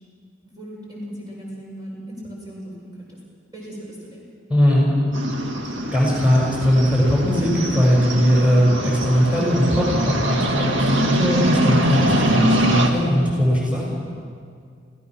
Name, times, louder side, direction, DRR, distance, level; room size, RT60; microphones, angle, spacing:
voice 1, 0.4-3.2 3.5-4.3, equal, 20° right, -4 dB, 5.8 m, -37 dB
voice 2, 4.5-4.9 5.9-13.9, equal, 5° right, -4 dB, 5.9 m, -19 dB
sound 1, 5.1-12.9, right 1 dB, 80° right, 2.1 m, -22 dB
27.5 x 16.5 x 6.2 m, 2.2 s
head